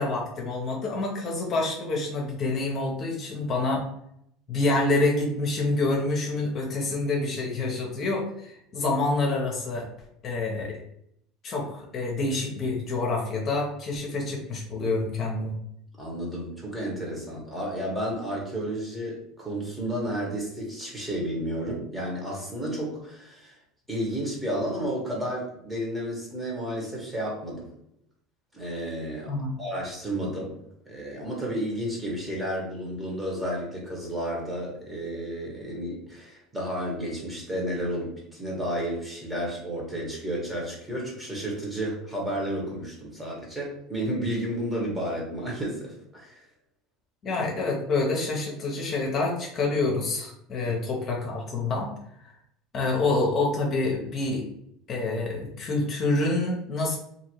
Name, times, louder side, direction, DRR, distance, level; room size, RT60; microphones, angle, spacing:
voice 1, 0.0-3.9 4.5-9.9 10.2-10.8 11.4-15.5 29.3-29.5 47.2-51.9 52.7-54.4 54.9-57.0, left 2 dB, 45° left, -1 dB, 0.8 m, -27 dB
voice 2, 16.0-23.6 23.9-27.7 28.5-30.5 30.9-46.4 50.6-50.7, equal, 10° right, -3 dB, 1.3 m, -32 dB
2.7 x 2.6 x 3.1 m, 0.74 s
supercardioid pair, 95°, 0 cm